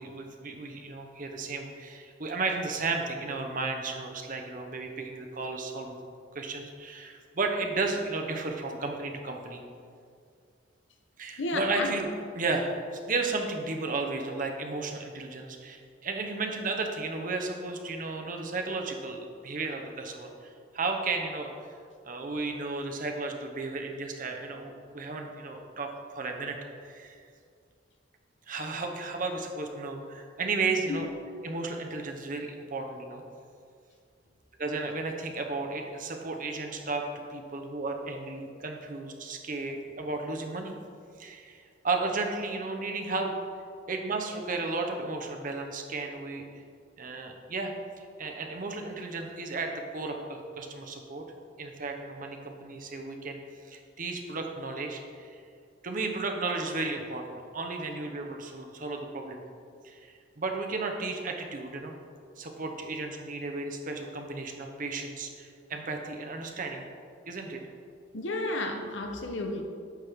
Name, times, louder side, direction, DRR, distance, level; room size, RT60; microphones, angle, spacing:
voice 1, 0.0-6.0 6.3-9.6 11.2-12.1 12.3-21.5 22.0-26.6 26.8-27.2 28.5-31.1 31.4-33.2 34.6-37.0 37.3-40.7 41.2-43.3 43.9-46.4 47.0-47.7 48.2-51.2 51.6-55.4 55.8-59.4 59.8-61.9 62.4-66.9 67.3-67.6, right 3 dB, 45° right, 3 dB, 0.8 m, -34 dB
voice 2, 11.4-11.9 30.9-31.0 68.1-69.6, left 2 dB, 80° left, 4 dB, 0.9 m, -32 dB
9.1 x 6.1 x 3.5 m, 2.2 s
head